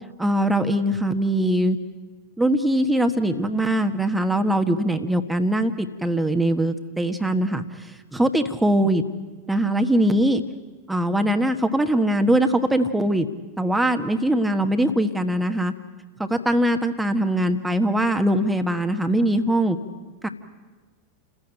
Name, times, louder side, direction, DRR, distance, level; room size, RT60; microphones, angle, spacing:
voice 1, 0.2-1.8 2.4-7.9 8.1-9.0 9.5-10.4 10.9-13.3 13.6-15.7 16.2-19.8 20.2-20.3, right 1 dB, 5° right, 7 dB, 1.4 m, -21 dB
29.5 x 15.0 x 9.1 m, 1.3 s
figure-of-eight pair, 90°, 0 cm